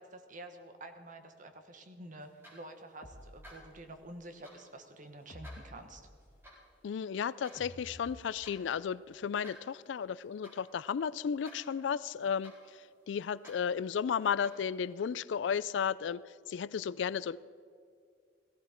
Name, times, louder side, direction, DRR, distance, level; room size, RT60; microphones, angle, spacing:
voice 1, 0.0-6.1, right 1 dB, 45° right, 6 dB, 1.3 m, -49 dB
sound 1, 2.2-15.0, equal, 15° right, 4.5 m, -59 dB
sound 2, 3.0-4.1 5.3-6.6 7.5-8.8, left 1 dB, 45° left, 1.4 m, -52 dB
voice 2, 6.8-12.5 13.1-17.4, left 7 dB, 70° left, 20 dB, 0.3 m, -34 dB
18.0 x 15.5 x 4.4 m, 2.3 s
head